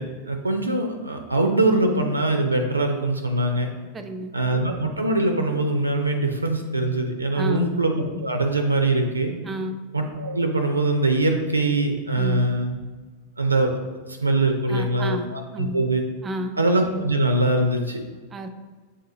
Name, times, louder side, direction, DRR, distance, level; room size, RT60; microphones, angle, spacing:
voice 1, 0.0-3.7 4.3-9.3 9.9-12.8 13.4-13.7 14.1-16.0 16.6-18.0, right 2 dB, 80° right, 5 dB, 0.4 m, -22 dB
voice 2, 3.9-4.3 7.3-7.7 9.5-9.8 12.2-12.6 14.7-15.3 15.5-15.8 16.2-16.6 18.3-18.5, equal, 20° right, 7 dB, 0.4 m, -31 dB
7.4 x 2.7 x 2.6 m, 1.4 s
figure-of-eight pair, 90°, 0 cm